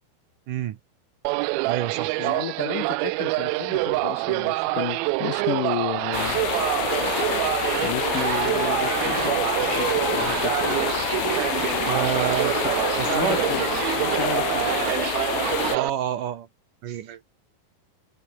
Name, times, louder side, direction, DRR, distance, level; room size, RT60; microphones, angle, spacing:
voice 1, 0.5-0.8 1.7-2.4 11.9-12.6 13.0-13.5 15.7-16.5 16.8-17.2, right 10 dB, 65° right, 2.4 m, -28 dB
sound 1, 1.3-15.9, right 22 dB, 80° right, 2.2 m, -26 dB
voice 2, 2.2-6.4 7.8-10.8 12.8-13.7 14.0-14.8, left 12 dB, 65° left, 2.4 m, -32 dB
sound 2, 6.1-15.8, left 20 dB, 80° left, 2.0 m, -28 dB
omnidirectional pair, 4.6 m